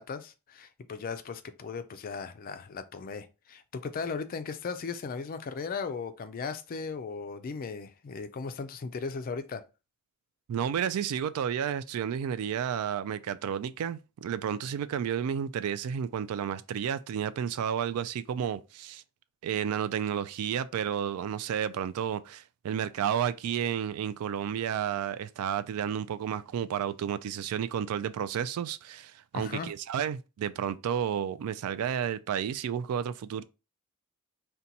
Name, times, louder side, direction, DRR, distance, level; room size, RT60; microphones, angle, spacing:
voice 1, 0.0-9.6 29.3-29.7, left 5 dB, 40° left, 0.3 m, -37 dB
voice 2, 10.5-19.0 19.4-33.4, right 8 dB, 80° right, 0.3 m, -31 dB
2.8 x 2.2 x 3.8 m
head